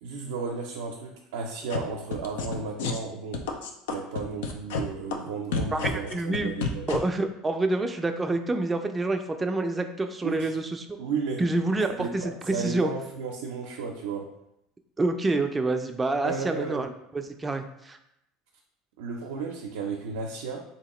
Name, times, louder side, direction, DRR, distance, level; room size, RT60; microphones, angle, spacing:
voice 1, 0.0-3.4 3.9-6.9 10.2-10.5 11.0-11.4 12.0-12.1 12.5-14.2 16.2-16.9 19.0-20.6, right 5 dB, 85° right, 0 dB, 0.5 m, -33 dB
sound 1, 1.7-1.8 2.1-3.0 3.3-4.8 5.1-5.2 5.5-7.0, left 6 dB, 80° left, 0.4 m, -29 dB
voice 2, 5.7-6.6 6.9-10.8 11.4-11.9 12.1-12.2 12.5-12.9 15.0-18.0, right 2 dB, 20° right, 6 dB, 0.4 m, -27 dB
3.6 x 2.8 x 3.0 m, 0.81 s
supercardioid pair, 95°, 0 cm